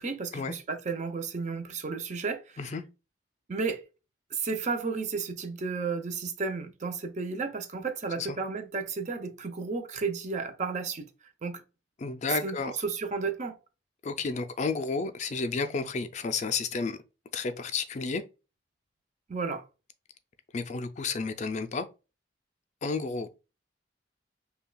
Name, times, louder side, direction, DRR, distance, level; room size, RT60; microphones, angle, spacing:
voice 1, 0.0-2.6 3.5-3.8 4.3-11.1 11.4-11.6 12.4-13.6 19.3-19.6, right 4 dB, 40° right, 0.5 m, -33 dB
voice 2, 12.0-12.7 14.0-17.0 17.3-18.2 20.5-21.9 22.8-23.3, left 4 dB, 40° left, 0.4 m, -31 dB
5.5 x 2.2 x 2.2 m
head